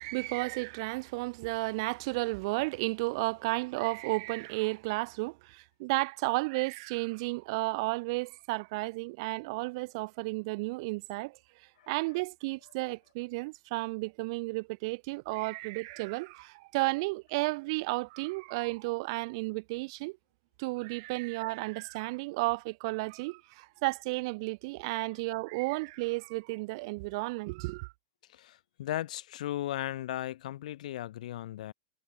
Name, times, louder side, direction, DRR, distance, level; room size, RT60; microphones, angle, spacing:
voice 1, 0.0-11.4 11.9-20.2 20.6-27.9, right 25 dB, 45° right, 0.6 m, -33 dB
voice 2, 28.3-31.7, left 13 dB, 75° left, 1.0 m, -36 dB
supercardioid pair, 175°, 4 cm